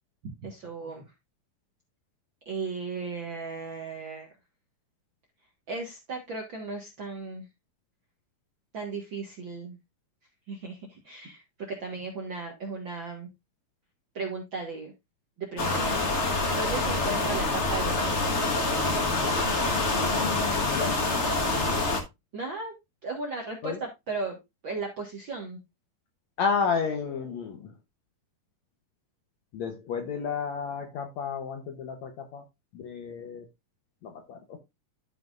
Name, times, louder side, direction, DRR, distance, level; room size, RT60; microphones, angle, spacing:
voice 1, 0.2-1.0 2.4-4.3 5.7-7.5 8.7-9.8 10.5-13.3 14.1-14.9 15.4-15.9 16.5-18.4 22.3-22.7 23.0-24.4 24.6-25.6, right 4 dB, 45° right, 1.7 m, -36 dB
sound 1, 15.6-22.0, left 2 dB, 85° left, 0.6 m, -26 dB
voice 2, 19.8-21.0 23.6-23.8 26.4-27.7 29.5-32.4 32.7-33.5 34.0-34.6, left 6 dB, 65° left, 1.9 m, -32 dB
12.5 x 5.8 x 2.5 m
omnidirectional pair, 3.9 m